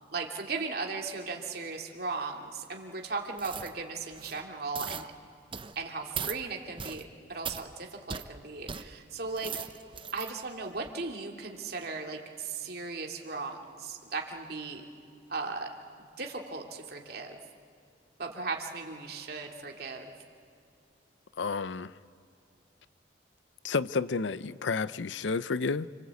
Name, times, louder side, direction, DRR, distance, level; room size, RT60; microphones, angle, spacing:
voice 1, 0.1-5.1 5.8-9.5 10.1-14.8 15.3-15.7 16.2-17.4 18.2-20.1, right 4 dB, 60° right, 2.6 m, -37 dB
sound 1, 3.4-3.7 4.1-4.4 4.7-5.1 5.5-5.8 6.1-6.4 6.8-7.0 7.4-7.6 8.1-8.3 8.7-8.8 9.2-10.3 10.8-10.9, right 7 dB, 30° right, 0.8 m, -38 dB
voice 2, 21.4-21.9 23.6-25.9, left 4 dB, 85° left, 0.6 m, -30 dB
29.5 x 23.5 x 8.3 m
head